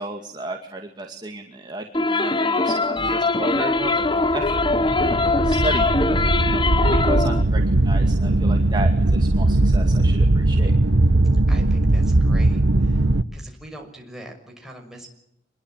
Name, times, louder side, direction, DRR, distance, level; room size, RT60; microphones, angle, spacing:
voice 1, 0.0-5.9 6.5-10.7, right 1 dB, 25° right, 2 dB, 2.3 m, -33 dB
sound 1, 1.9-7.4, left 3 dB, 25° left, 1.0 m, -21 dB
sound 2, 4.0-13.2, right 2 dB, 75° right, 1.2 m, -19 dB
voice 2, 11.5-13.0 13.3-15.1, right 1 dB, ahead, 0 dB, 6.1 m, -42 dB
26.5 x 22.0 x 9.2 m, 0.77 s
head